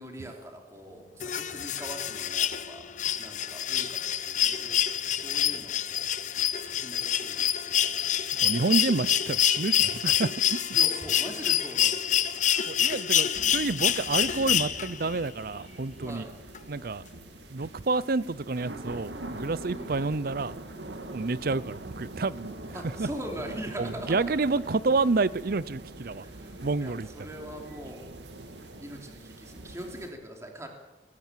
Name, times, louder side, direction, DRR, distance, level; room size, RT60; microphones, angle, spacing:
voice 1, 0.0-2.8 3.2-6.1 6.6-8.1 10.7-12.2 16.0-16.3 19.6-20.1 22.7-24.5 26.1-28.1 28.8-30.7, right 1 dB, 15° right, 3.1 m, -42 dB
sound 1, 1.2-15.1 16.5-16.6, left 10 dB, 45° left, 0.8 m, -27 dB
voice 2, 8.4-10.3 12.5-16.3 16.7-17.0 17.5-20.5 21.1-23.1 23.8-26.2 26.6-27.3, right 3 dB, 55° right, 0.6 m, -29 dB
sound 2, 13.3-30.1, right 1 dB, 75° right, 2.2 m, -43 dB
21.5 x 18.0 x 7.4 m
head